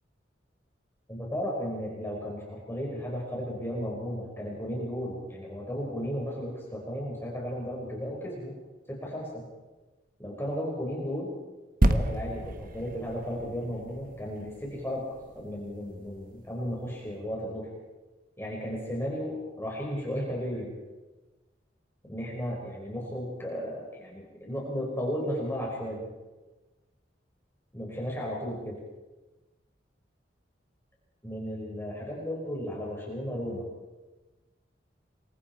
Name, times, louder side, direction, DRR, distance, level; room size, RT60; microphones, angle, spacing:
voice 1, 1.1-8.5 8.9-9.4 10.2-11.4 11.9-15.1 15.3-17.7 18.4-20.7 22.1-26.1 27.7-28.8 31.2-33.7, equal, 15° left, -3 dB, 4.8 m, -34 dB
sound 1, 11.8-15.4 16.0-16.1, right 1 dB, 50° right, 1.3 m, -29 dB
27.0 x 23.0 x 4.5 m, 1.2 s
head